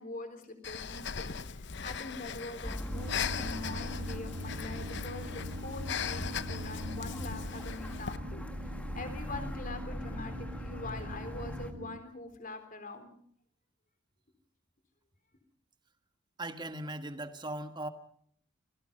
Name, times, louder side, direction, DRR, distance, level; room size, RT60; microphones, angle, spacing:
voice 1, 0.0-8.7 8.9-13.1, left 2 dB, 40° left, 7 dB, 3.9 m, -44 dB
Breathing, 0.6-8.2, left 6 dB, 60° left, 0.9 m, -39 dB
sound 1, 2.6-11.7, equal, 5° left, 1.6 m, -41 dB
sound 2, 2.9-12.0, equal, 75° right, 1.8 m, -43 dB
voice 2, 16.4-17.9, right 1 dB, 20° right, 8 dB, 1.5 m, -38 dB
28.0 x 18.0 x 5.5 m, 0.62 s
head